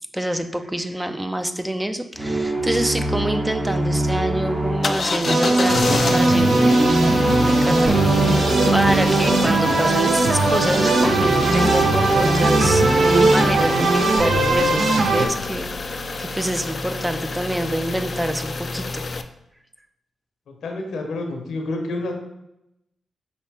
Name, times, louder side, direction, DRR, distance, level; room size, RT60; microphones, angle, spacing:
voice 1, 0.1-6.9 7.4-8.5 8.7-12.9 13.3-19.1, right 1 dB, 10° right, 8 dB, 0.5 m, -26 dB
sound 1, 2.2-15.2, right 1 dB, 30° right, 1.1 m, -25 dB
sound 2, 4.8-19.2, left 3 dB, 55° left, 0.3 m, -29 dB
sound 3, 5.2-15.3, right 2 dB, 65° right, 0.6 m, -19 dB
voice 2, 20.5-22.1, left 2 dB, 75° left, 2 dB, 0.8 m, -29 dB
5.4 x 2.8 x 3.3 m, 0.86 s
supercardioid pair, 40°, 0 cm